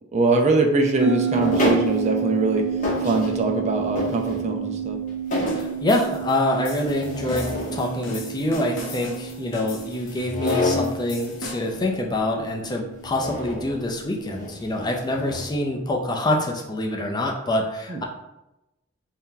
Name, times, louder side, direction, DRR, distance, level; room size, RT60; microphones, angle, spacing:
voice 1, 0.1-2.7 3.0-5.0 17.9-18.0, right 2 dB, 35° right, 2 dB, 0.4 m, -22 dB
sound 1, 1.0-13.8, right 7 dB, 65° right, 1.2 m, -30 dB
sound 2, 1.3-2.3 2.8-3.5 3.9-4.7 5.1-5.7 6.8-7.8 10.1-11.0 13.2-13.9 14.3-14.5 15.1-15.5, left 1 dB, 40° left, 0.9 m, -27 dB
sound 3, 5.5-11.8, left 2 dB, 65° left, 0.7 m, -39 dB
voice 2, 5.5-18.0, left 1 dB, 20° left, 1 dB, 0.4 m, -26 dB
3.4 x 2.8 x 3.7 m, 0.93 s
head